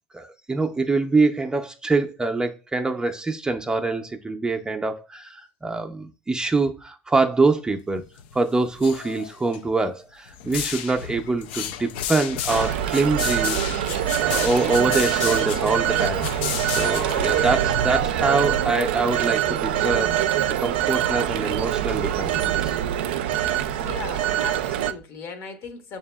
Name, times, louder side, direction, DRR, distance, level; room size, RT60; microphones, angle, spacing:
voice 1, 0.1-8.0 8.3-16.2 16.8-20.3 20.6-22.8, right 3 dB, 15° right, 0.5 m, -24 dB
sound 1, 8.0-8.4 8.6-9.6 10.3-17.6, left 10 dB, 75° left, 0.4 m, -32 dB
Telephone, 12.5-24.9, right 11 dB, 80° right, 0.4 m, -24 dB
voice 2, 23.8-26.0, left 5 dB, 55° left, 1.0 m, -37 dB
6.5 x 2.8 x 2.2 m
hypercardioid pair, 90°, 6 cm